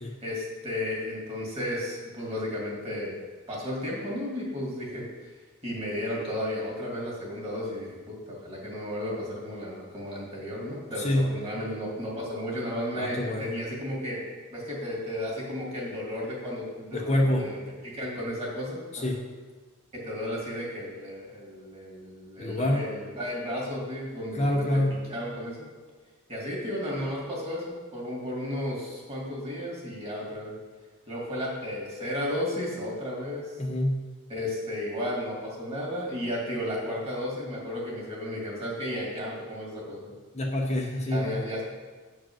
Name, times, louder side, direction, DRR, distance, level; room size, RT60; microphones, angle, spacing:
voice 1, 0.2-3.2 3.5-5.1 5.6-14.2 14.5-17.6 17.8-19.2 19.9-25.7 26.3-30.5 31.1-33.5 34.3-40.1 41.0-41.6, left 1 dB, 30° right, -3 dB, 2.3 m, -33 dB
voice 2, 11.0-11.4 12.9-13.5 16.9-17.4 18.9-19.2 22.4-22.9 24.3-25.0 33.6-34.1 40.3-41.4, left 1 dB, 30° left, -1 dB, 0.8 m, -26 dB
8.7 x 4.8 x 6.1 m, 1.4 s
head